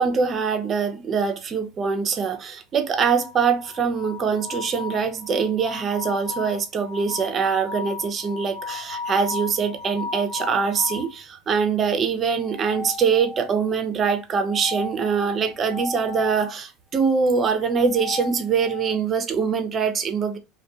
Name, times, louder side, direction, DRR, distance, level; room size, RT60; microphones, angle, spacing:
voice 1, 0.0-20.4, right 6 dB, 40° right, 0.6 m, -23 dB
sound 1, 3.0-11.1 12.4-13.7 14.4-16.4 17.6-19.0, left 4 dB, 60° left, 1.0 m, -35 dB
2.5 x 2.2 x 2.2 m
hypercardioid pair, 90°, 0 cm